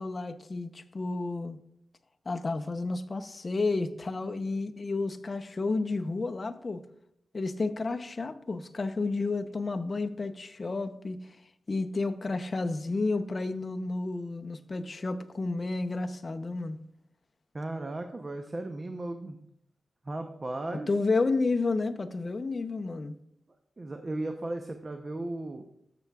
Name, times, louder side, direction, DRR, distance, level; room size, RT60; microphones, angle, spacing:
voice 1, 0.0-1.6 2.3-6.8 7.3-11.4 11.7-16.8 20.7-23.2, left 3 dB, 40° left, 0.6 m, -31 dB
voice 2, 17.5-19.4 20.0-20.9 23.8-25.6, right 2 dB, 35° right, 0.7 m, -36 dB
14.0 x 6.8 x 2.3 m
cardioid pair, 70°, 0 cm